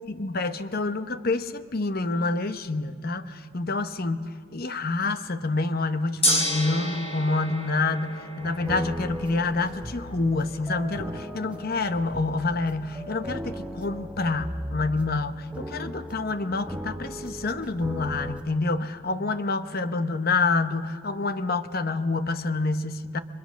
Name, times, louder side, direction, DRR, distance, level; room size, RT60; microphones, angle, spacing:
voice 1, 0.0-23.2, left 3 dB, 45° left, 10 dB, 0.9 m, -27 dB
Gong, 6.2-16.4, equal, 30° left, 4.6 m, -34 dB
sound 1, 8.4-18.4, equal, 5° right, 1.0 m, -37 dB
30.0 x 23.0 x 6.3 m, 2.1 s
head